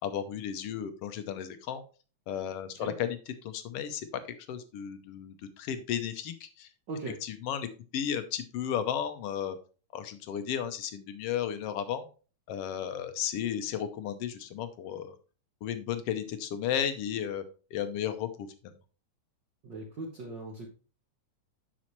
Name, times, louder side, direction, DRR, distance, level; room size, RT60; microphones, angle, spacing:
voice 1, 0.0-1.8 2.3-4.1 4.5-6.7 7.2-7.7 7.9-9.6 9.9-12.1 12.5-15.1 15.6-17.4 17.7-18.5, left 9 dB, 70° left, 10 dB, 1.6 m, -34 dB
voice 2, 6.9-7.2 19.6-20.7, right 2 dB, 55° right, 0 dB, 1.3 m, -39 dB
8.5 x 6.2 x 3.1 m, 0.35 s
omnidirectional pair, 3.3 m